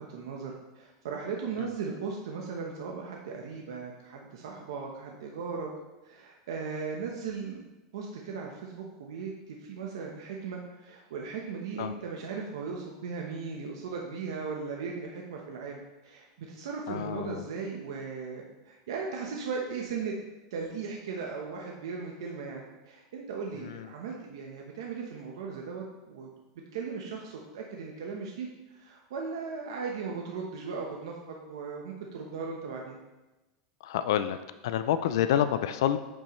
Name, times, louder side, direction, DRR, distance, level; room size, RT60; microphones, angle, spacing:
voice 1, 0.0-5.7 6.0-7.6 7.9-20.1 20.5-26.3 26.7-33.0, right 5 dB, 85° right, 0 dB, 1.0 m, -37 dB
voice 2, 16.9-17.4 23.7-23.8 33.8-34.4 34.6-36.0, left 10 dB, 70° left, 11 dB, 0.4 m, -28 dB
8.6 x 5.4 x 3.1 m, 1.1 s
supercardioid pair, 175°, 2 cm